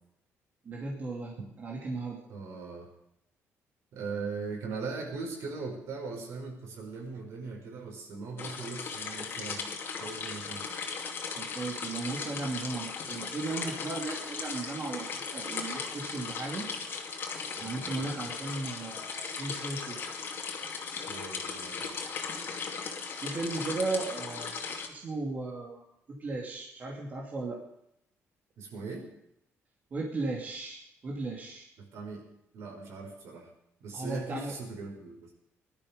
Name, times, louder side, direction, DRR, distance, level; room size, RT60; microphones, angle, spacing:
voice 1, 0.6-2.2 11.3-16.7 17.6-20.0 23.1-27.6 29.9-31.7 33.9-34.5, right 3 dB, 35° right, -2 dB, 2.7 m, -36 dB
voice 2, 2.3-2.9 3.9-9.7 10.0-10.7 17.6-18.1 21.1-22.1 28.6-29.1 31.8-32.3 32.5-33.5 33.8-35.3, right 4 dB, 70° right, 1 dB, 5.2 m, -40 dB
sound 1, 8.4-24.9, left 5 dB, 45° left, 2.4 m, -37 dB
19.5 x 12.5 x 5.3 m, 0.78 s
cardioid pair, 145°, 5 cm